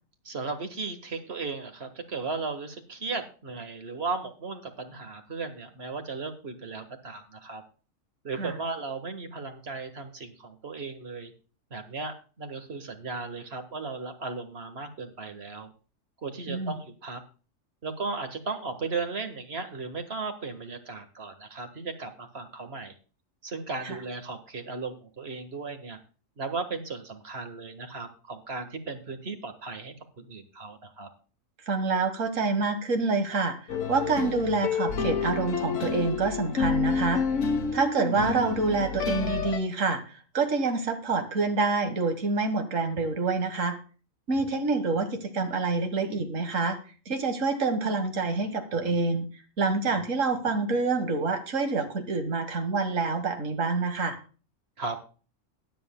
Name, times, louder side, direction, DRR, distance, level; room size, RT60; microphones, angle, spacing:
voice 1, 0.3-7.6 8.2-11.3 11.7-15.7 16.2-17.2 17.8-23.0 23.4-26.0 26.4-31.1 54.8-55.0, right 4 dB, 55° right, 7 dB, 1.8 m, -36 dB
voice 2, 31.7-37.2 37.7-43.8 44.3-46.8 47.1-49.3 49.6-54.2, right 3 dB, 75° right, 7 dB, 1.8 m, -27 dB
sound 1, 33.7-39.6, left 5 dB, 70° left, 1.4 m, -29 dB
21.5 x 7.6 x 2.2 m, 0.37 s
omnidirectional pair, 1.3 m